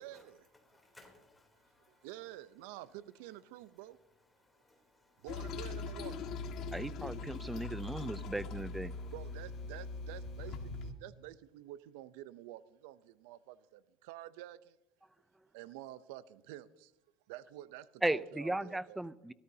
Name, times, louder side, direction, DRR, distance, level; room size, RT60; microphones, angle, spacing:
voice 1, 0.0-0.5 1.9-4.0 5.2-6.2 9.1-14.8 15.5-16.9 17.3-19.0, right 14 dB, 90° right, 0.6 m, -49 dB
voice 2, 0.6-2.1 4.3-5.3 6.1-6.2 6.6-8.3 8.9-9.1, left 2 dB, 10° left, 3.3 m, -66 dB
Toilet flush, 5.3-10.9, left 3 dB, 55° left, 1.9 m, -41 dB
voice 3, 6.7-8.9 18.0-19.3, right 1 dB, 5° right, 0.5 m, -36 dB
25.0 x 13.5 x 2.8 m
cardioid pair, 125°, 0 cm